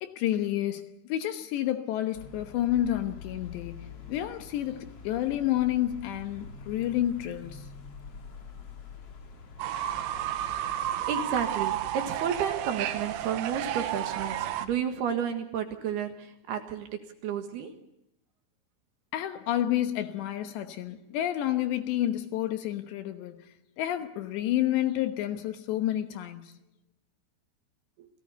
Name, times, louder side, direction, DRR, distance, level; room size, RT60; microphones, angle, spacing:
voice 1, 0.0-7.7 19.1-23.5 23.8-26.6, left 13 dB, 70° left, 3.1 m, -30 dB
sound 1, 2.1-14.8, left 5 dB, 45° left, 2.3 m, -47 dB
Fowl / Bird, 9.6-14.7, right 12 dB, 85° right, 3.7 m, -32 dB
voice 2, 11.1-17.8 28.0-28.1, right 8 dB, 65° right, 3.1 m, -32 dB
28.5 x 17.5 x 6.8 m
omnidirectional pair, 5.7 m